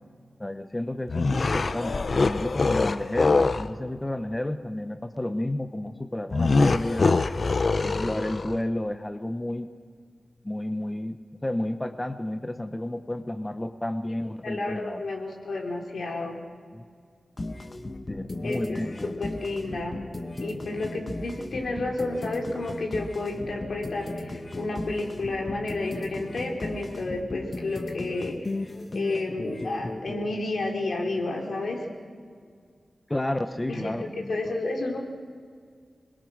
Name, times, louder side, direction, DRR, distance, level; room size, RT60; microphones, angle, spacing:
voice 1, 0.4-7.2 7.8-9.7 10.4-15.0 16.7-16.8 18.1-19.2 33.1-34.6, left 1 dB, 20° left, 8 dB, 0.8 m, -31 dB
sound 1, 1.1-3.7 6.3-8.6, left 3 dB, 55° left, 0.7 m, -24 dB
voice 2, 14.4-16.4 18.4-20.0 20.4-28.5 28.9-31.9 33.7-35.0, left 2 dB, 75° left, 1 dB, 3.7 m, -31 dB
sound 2, 17.4-30.3, left 2 dB, 35° left, 1.5 m, -36 dB
26.0 x 21.0 x 6.4 m, 2.1 s
wide cardioid pair, 90°, 0 cm